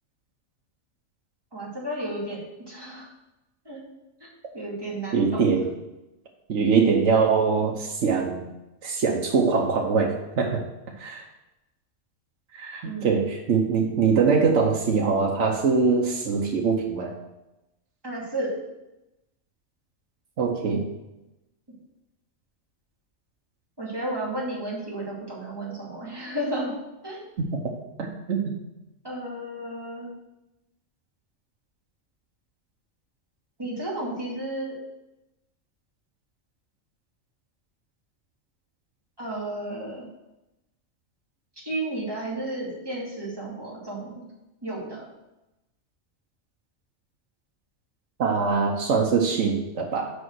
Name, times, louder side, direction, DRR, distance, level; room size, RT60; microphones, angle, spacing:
voice 1, 1.5-3.1 3.6-3.8 4.2-4.3 4.5-5.5 12.8-13.2 18.0-18.6 23.8-26.8 27.0-27.2 29.0-30.1 33.6-34.7 39.2-40.1 41.6-44.2 44.6-45.1, right 1 dB, 20° right, -5 dB, 2.5 m, -32 dB
voice 2, 5.1-5.6 6.5-8.4 8.8-10.6 11.0-11.2 12.5-17.1 20.4-20.8 28.0-28.4 48.2-50.1, right 5 dB, 75° right, -1 dB, 1.3 m, -23 dB
6.8 x 5.4 x 6.3 m, 0.96 s
omnidirectional pair, 1.2 m